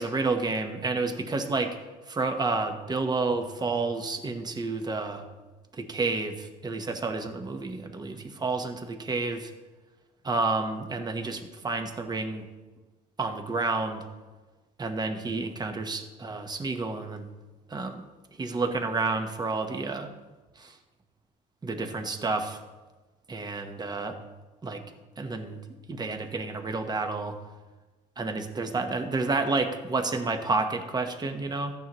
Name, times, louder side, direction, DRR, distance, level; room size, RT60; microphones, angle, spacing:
voice 1, 0.0-1.8 2.1-5.2 5.7-9.5 10.2-12.4 13.2-14.0 14.8-17.3 17.7-18.1 18.4-20.1 20.6-20.8 21.6-22.6 23.3-24.2 24.6-24.8 25.2-25.6 25.9-27.4 28.2-31.7, right 3 dB, 25° right, 5 dB, 1.1 m, -30 dB
14.5 x 9.4 x 3.1 m, 1.3 s
cardioid pair, 110°, 17 cm